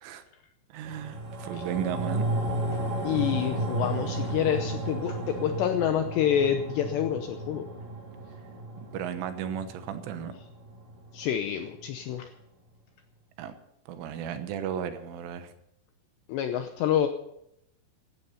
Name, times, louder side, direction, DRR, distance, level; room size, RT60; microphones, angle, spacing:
voice 1, 0.7-2.3 8.9-10.4 13.4-13.5 13.9-15.5, right 9 dB, 75° right, 9 dB, 3.5 m, -34 dB
sound 1, 0.8-11.4 11.8-11.9, right 2 dB, 45° right, 4.3 m, -34 dB
voice 2, 3.0-7.7 11.1-12.3 16.3-17.1, left 9 dB, 80° left, 7 dB, 2.5 m, -27 dB
16.5 x 12.5 x 5.6 m, 0.78 s
omnidirectional pair, 5.9 m